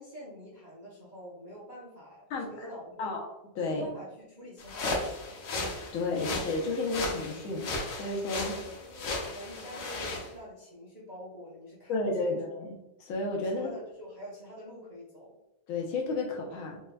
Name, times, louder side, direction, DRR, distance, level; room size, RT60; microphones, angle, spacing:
voice 1, 0.0-3.1 3.6-5.4 8.5-12.4 13.4-15.3, equal, 65° right, -6 dB, 0.4 m, -46 dB
sound 1, 4.6-10.3, left 2 dB, 65° left, 1.2 m, -35 dB
voice 2, 5.9-8.6 11.9-13.7 15.7-16.8, left 2 dB, 80° left, 0 dB, 1.6 m, -32 dB
4.5 x 3.2 x 2.3 m, 0.92 s
omnidirectional pair, 2.2 m